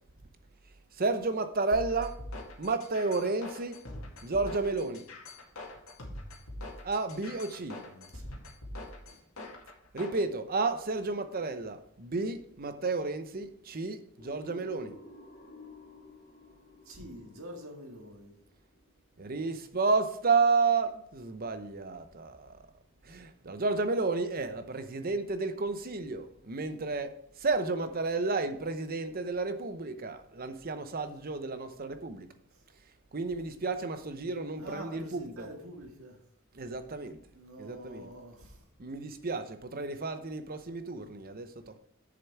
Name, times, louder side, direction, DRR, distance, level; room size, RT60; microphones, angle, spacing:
voice 1, 1.0-2.2 2.6-3.8 4.2-5.1 6.8-7.8 9.9-15.0 19.2-22.6 23.0-32.3 33.1-35.5 36.5-37.2 37.6-38.1 38.8-41.8, right 3 dB, 45° right, 0.8 m, -32 dB
sound 1, 1.7-10.2, left 1 dB, 85° left, 2.2 m, -43 dB
voice 2, 7.6-8.2 9.1-9.2 16.9-18.4 32.5-32.6 34.6-36.2 37.3-38.6, equal, 90° right, 1.9 m, -46 dB
sound 2, 14.2-18.9, left 3 dB, 40° left, 1.6 m, -52 dB
7.7 x 6.9 x 4.6 m
head